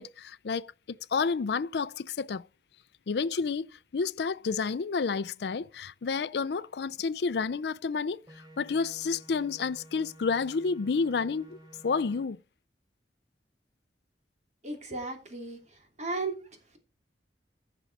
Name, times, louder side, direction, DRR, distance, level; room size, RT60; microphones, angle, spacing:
voice 1, 0.0-2.4 3.1-11.6 11.8-12.4, left 5 dB, 65° left, 0.4 m, -30 dB
sound 1, 8.3-12.2, right 1 dB, 20° right, 3.5 m, -52 dB
voice 2, 14.6-16.4, right 3 dB, 40° right, 3.0 m, -35 dB
15.0 x 6.1 x 4.1 m
head